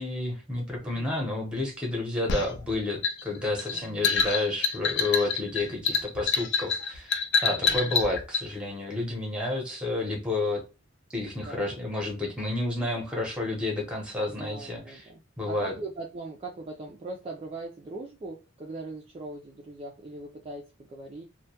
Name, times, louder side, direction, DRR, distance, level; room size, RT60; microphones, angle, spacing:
voice 1, 0.0-7.1 7.4-10.6 11.1-15.0 15.4-15.7, left 2 dB, 5° right, 0 dB, 0.7 m, -30 dB
voice 2, 0.8-1.2 3.6-4.1 5.7-6.0 7.5-7.9 11.4-11.7 14.3-21.2, right 2 dB, 30° right, -1 dB, 0.3 m, -41 dB
sound 1, 2.3-8.5, left 5 dB, 55° left, 0.4 m, -27 dB
2.2 x 2.1 x 2.7 m, 0.30 s
head